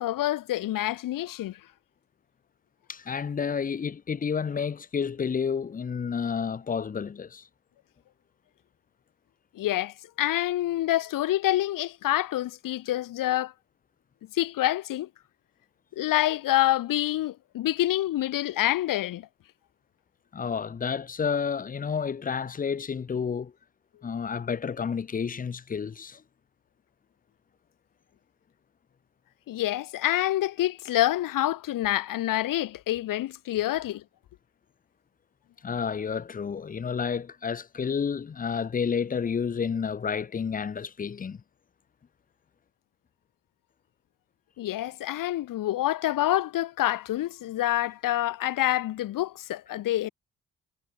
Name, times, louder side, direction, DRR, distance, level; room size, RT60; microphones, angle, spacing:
voice 1, 0.0-1.6 9.5-13.5 14.3-15.1 16.0-19.3 29.5-34.0 44.6-50.1, left 14 dB, 60° left, 1.1 m, -27 dB
voice 2, 2.9-7.5 20.3-23.5 24.0-26.2 35.6-41.4, left 6 dB, 25° left, 0.6 m, -30 dB
hypercardioid pair, 40°, 37 cm